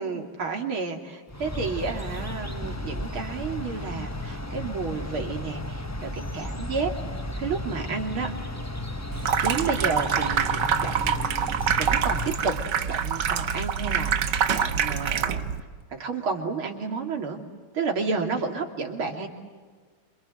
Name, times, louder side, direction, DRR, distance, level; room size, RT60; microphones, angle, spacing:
voice 1, 0.0-6.9 7.4-8.3 9.4-11.3 11.8-12.5 12.9-15.4 15.9-17.4 17.7-19.3, right 4 dB, 90° right, 2 dB, 3.8 m, -31 dB
sound 1, 1.3-12.7, left 1 dB, 10° left, 0.8 m, -34 dB
Water tap faucet / Sink (filling or washing), 9.1-15.6, right 7 dB, 60° right, 1.7 m, -26 dB
27.5 x 27.5 x 8.0 m, 1.5 s
omnidirectional pair, 2.2 m